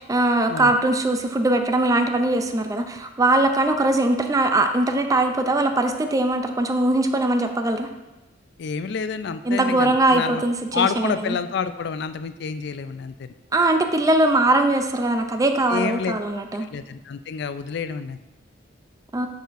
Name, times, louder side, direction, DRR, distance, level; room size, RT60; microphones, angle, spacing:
voice 1, 0.0-7.9 9.5-11.4 13.5-16.7 19.1-19.3, right 2 dB, 20° right, 6 dB, 0.4 m, -21 dB
voice 2, 8.6-10.4 10.7-13.3 15.7-16.1 16.7-18.2, left 6 dB, 65° left, 11 dB, 0.4 m, -28 dB
7.9 x 6.4 x 2.5 m, 1.1 s
head